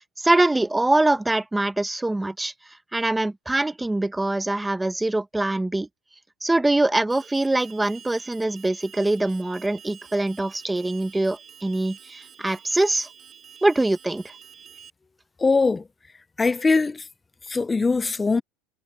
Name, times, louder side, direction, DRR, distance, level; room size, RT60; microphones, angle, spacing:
voice 1, 0.2-2.5 2.9-5.9 6.4-13.1 13.6-14.2, right 2 dB, 5° right, 0.9 m, -23 dB
Alarm, 7.1-14.9, right 8 dB, 25° right, 3.8 m, -48 dB
voice 2, 15.4-15.8 16.4-17.0 17.5-18.4, left 4 dB, 10° left, 0.4 m, -21 dB
supercardioid pair, 155°, 0 cm